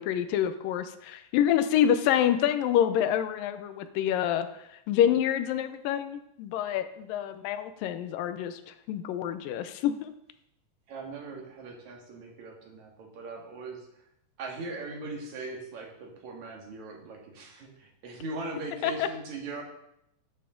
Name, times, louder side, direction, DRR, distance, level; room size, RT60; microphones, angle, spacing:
voice 1, 0.0-4.5 4.9-10.1 18.8-19.1, left 10 dB, 85° left, 10 dB, 2.4 m, -27 dB
voice 2, 10.9-13.8 14.4-19.6, right 3 dB, 60° right, 1 dB, 3.0 m, -40 dB
12.5 x 9.0 x 3.8 m, 0.79 s
omnidirectional pair, 3.9 m